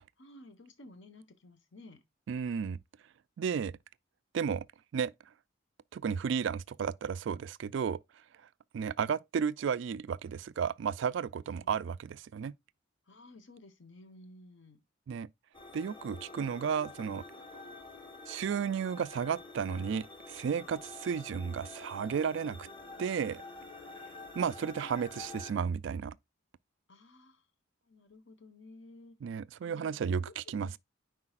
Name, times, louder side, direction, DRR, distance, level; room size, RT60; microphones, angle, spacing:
voice 1, 0.2-2.0 11.5-11.8 13.1-14.8 26.9-27.4 27.8-29.2 29.6-30.7, left 2 dB, 65° left, 1.3 m, -54 dB
voice 2, 2.3-2.8 3.4-3.7 4.3-4.6 4.9-5.1 5.9-8.0 8.7-12.5 15.1-15.3 15.7-17.2 18.3-22.7 23.0-23.4 24.4-26.2 29.2-30.8, right 7 dB, 60° right, 0.3 m, -33 dB
sound 1, 15.5-25.5, left 3 dB, 25° left, 1.4 m, -48 dB
9.7 x 4.8 x 2.4 m
head